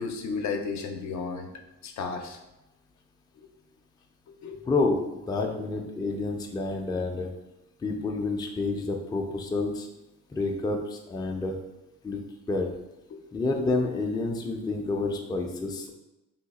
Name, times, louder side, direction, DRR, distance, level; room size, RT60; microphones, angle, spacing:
voice 1, 0.0-1.5 1.8-2.4 3.4-3.5 4.3-4.6 13.1-13.5, left 4 dB, 65° left, 4 dB, 0.6 m, -34 dB
voice 2, 4.6-7.3 7.8-9.9 10.3-11.6 12.0-12.2 12.5-12.7 13.3-15.9, left 3 dB, 15° left, 2 dB, 0.4 m, -29 dB
2.8 x 2.3 x 4.0 m, 0.97 s
cardioid pair, 90°, 30 cm